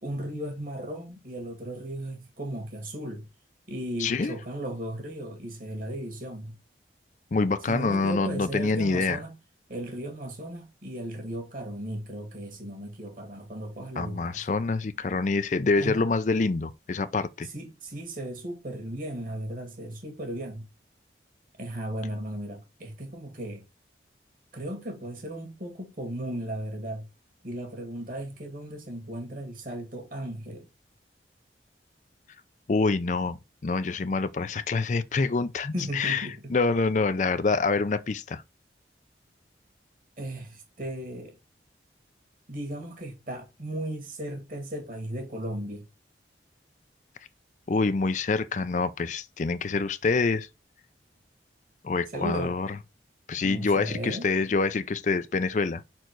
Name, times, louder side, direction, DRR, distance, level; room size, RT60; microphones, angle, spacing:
voice 1, 0.0-3.2 3.7-6.5 7.7-9.3 9.7-14.5 15.8-16.1 17.4-20.6 21.6-23.6 24.5-27.1 27.4-30.7 35.7-36.5 40.2-41.4 42.5-45.8 52.1-52.6 53.4-54.3, right 1 dB, 50° right, 1.9 m, -36 dB
voice 2, 4.0-4.3 7.3-9.2 14.0-17.5 32.7-33.4 33.6-38.4 47.7-50.5 51.8-52.7 53.3-55.8, left 3 dB, 40° left, 0.4 m, -26 dB
5.2 x 4.5 x 4.5 m
head